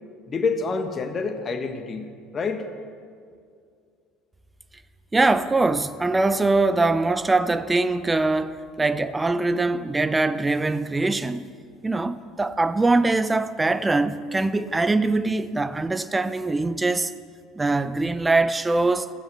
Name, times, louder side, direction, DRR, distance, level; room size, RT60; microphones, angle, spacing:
voice 1, 0.3-2.1 2.3-2.7, left 4 dB, 30° left, 1.7 m, -27 dB
voice 2, 5.1-11.4 11.8-17.1 17.6-19.1, right 3 dB, 15° right, 0.7 m, -22 dB
15.0 x 15.0 x 6.3 m
figure-of-eight pair, 65°, 0 cm